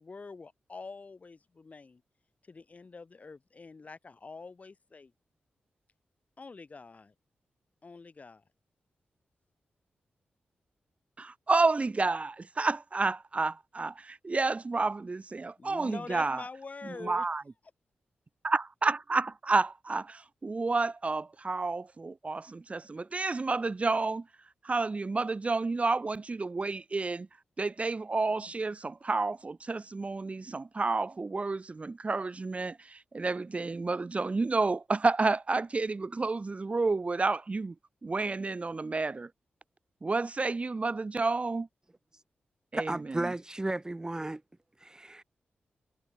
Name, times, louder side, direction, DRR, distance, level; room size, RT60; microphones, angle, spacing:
voice 1, 0.0-2.0 2.4-5.1 6.4-7.1 7.8-8.4 15.6-17.3, left 4 dB, 45° left, 2.6 m, -45 dB
voice 2, 11.2-16.4 16.8-17.4 18.4-24.3 24.6-27.3 27.6-37.8 38.0-39.3 40.0-41.7 42.7-43.3, right 3 dB, 35° right, 2.2 m, -30 dB
voice 3, 42.7-44.4 44.8-45.2, right 2 dB, 20° right, 1.1 m, -34 dB
cardioid pair, 70°, 4 cm